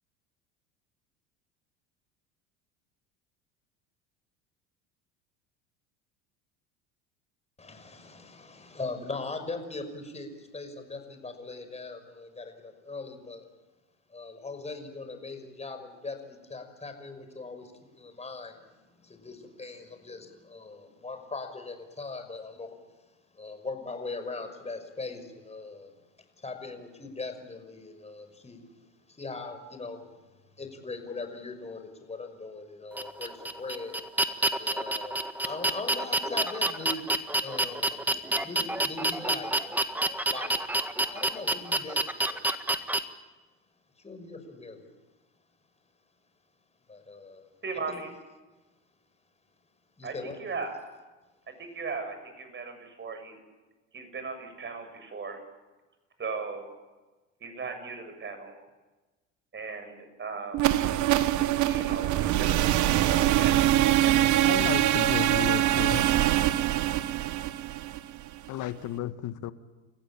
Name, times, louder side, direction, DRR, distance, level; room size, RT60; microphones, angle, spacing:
voice 1, 7.6-13.4 14.1-22.7 23.3-25.9 26.4-28.6 29.2-30.1 30.6-34.0 34.6-37.1 37.4-37.9 38.4-39.5 40.3-40.6 41.1-42.4 44.0-44.9 46.9-47.5 47.9-48.0 50.0-50.4, left 3 dB, 15° left, 7 dB, 5.7 m, -40 dB
sound 1, 33.0-43.0, right 1 dB, 5° right, 1.7 m, -28 dB
voice 2, 47.6-48.1 50.0-50.7 51.6-53.4 53.9-55.4 56.2-56.7 57.4-58.5 59.5-60.7 61.6-64.3, right 4 dB, 30° right, 7 dB, 7.5 m, -37 dB
sound 2, 60.5-68.5, right 13 dB, 50° right, 1.3 m, -24 dB
voice 3, 64.4-66.1 68.5-69.5, left 13 dB, 55° left, 11 dB, 1.7 m, -33 dB
30.0 x 15.0 x 8.9 m, 1.2 s
hypercardioid pair, 80°, 37 cm